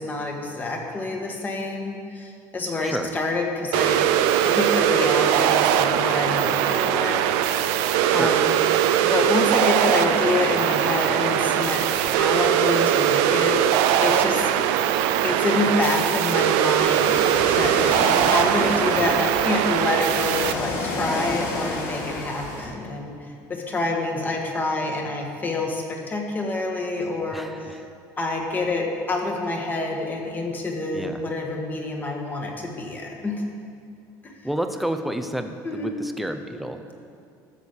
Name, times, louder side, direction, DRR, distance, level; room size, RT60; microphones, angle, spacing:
voice 1, 0.0-7.2 7.6-8.5 9.0-13.6 14.0-14.5 15.2-17.3 17.5-17.7 18.3-23.2 23.5-27.7 28.2-33.4 34.2-34.3 35.6-35.9, left 2 dB, 20° left, 1 dB, 1.7 m, -27 dB
sound 1, 3.7-20.5, right 11 dB, 85° right, 0.6 m, -21 dB
voice 2, 8.1-8.4 19.0-19.2 27.3-27.9 30.9-31.2 34.4-37.0, right 1 dB, ahead, 6 dB, 0.7 m, -30 dB
Ocean, 16.8-22.7, left 2 dB, 85° left, 2.2 m, -30 dB
13.0 x 6.3 x 7.3 m, 2.4 s
cardioid pair, 135°, 8 cm